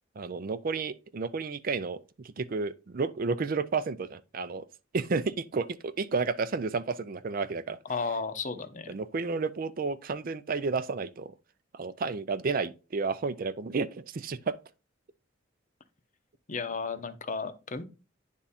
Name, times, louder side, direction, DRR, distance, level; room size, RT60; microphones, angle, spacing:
voice 1, 0.2-4.7 4.9-7.8 8.9-11.3 11.7-14.6, right 4 dB, 45° right, 0.4 m, -31 dB
voice 2, 7.8-9.0 16.5-17.8, left 4 dB, 40° left, 0.7 m, -34 dB
10.0 x 3.6 x 4.2 m
head